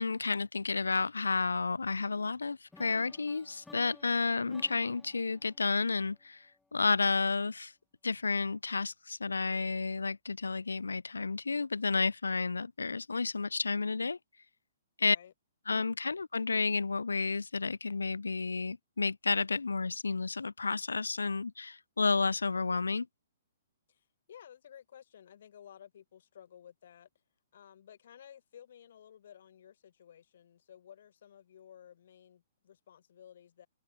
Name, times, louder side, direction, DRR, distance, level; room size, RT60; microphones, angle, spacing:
voice 1, 0.0-6.4 6.7-7.7 8.0-14.2 15.0-15.2 15.7-23.1, left 4 dB, 75° left, 0.4 m, -31 dB
sound 1, 2.7-6.7, left 3 dB, 5° left, 1.8 m, -57 dB
voice 2, 15.0-15.3 23.9-27.1 27.5-33.7, left 9 dB, 55° left, 2.8 m, -55 dB
figure-of-eight pair, 120°, 0 cm